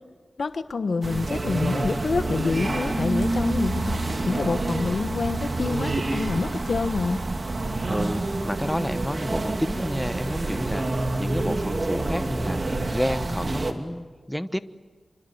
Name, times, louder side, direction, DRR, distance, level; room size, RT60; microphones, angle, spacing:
voice 1, 0.4-4.0 4.3-7.3, left 4 dB, 80° left, 10 dB, 1.2 m, -27 dB
sound 1, 1.0-13.7, right 2 dB, 55° right, 2.6 m, -27 dB
voice 2, 7.9-14.6, equal, 5° left, 12 dB, 1.1 m, -30 dB
26.5 x 25.0 x 7.9 m, 1.4 s
cardioid pair, 50°, 0 cm